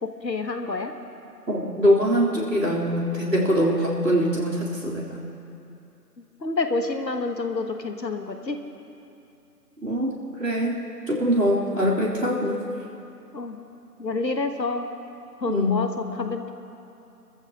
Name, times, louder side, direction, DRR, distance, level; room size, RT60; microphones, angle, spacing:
voice 1, 0.0-0.9 6.4-8.6 13.3-13.6 14.0-14.9 15.4-16.5, left 3 dB, 80° left, 6 dB, 1.5 m, -28 dB
voice 2, 1.5-5.2 9.8-12.6 15.5-15.8, equal, 75° right, -6 dB, 3.8 m, -23 dB
29.0 x 14.5 x 3.0 m, 2.8 s
figure-of-eight pair, 175°, 49 cm